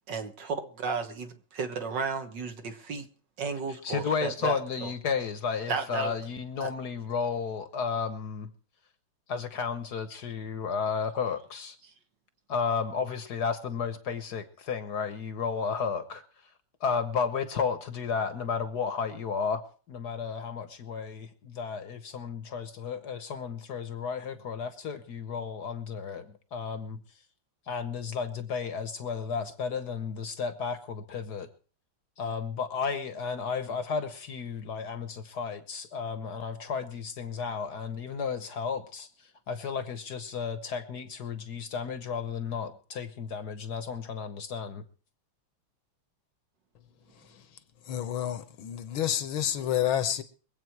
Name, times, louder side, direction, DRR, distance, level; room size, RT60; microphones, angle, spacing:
voice 1, 0.1-3.1 3.4-4.9 5.7-6.1 6.6-6.7, right 5 dB, 60° right, 1.9 m, -33 dB
voice 2, 3.8-8.5 9.3-11.8 12.5-16.2 16.8-19.6 19.9-27.0 27.7-31.5 32.2-39.1 39.5-44.8, left 6 dB, 55° left, 1.4 m, -33 dB
voice 3, 47.9-50.2, left 10 dB, 75° left, 1.8 m, -29 dB
23.0 x 8.5 x 4.6 m
omnidirectional pair, 2.3 m